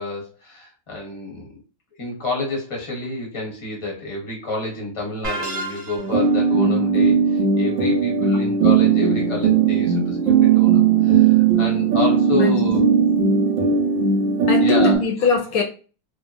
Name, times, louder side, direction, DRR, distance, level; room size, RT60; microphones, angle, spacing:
voice 1, 0.0-1.6 2.0-12.8 14.6-15.0, left 2 dB, 25° left, 0.7 m, -29 dB
sound 1, 5.2-6.3, right 2 dB, 45° right, 0.5 m, -30 dB
sound 2, 6.0-15.0, right 5 dB, 65° right, 0.8 m, -17 dB
voice 2, 14.5-15.6, left 5 dB, 75° left, 1.0 m, -23 dB
2.8 x 2.3 x 2.3 m
omnidirectional pair, 1.7 m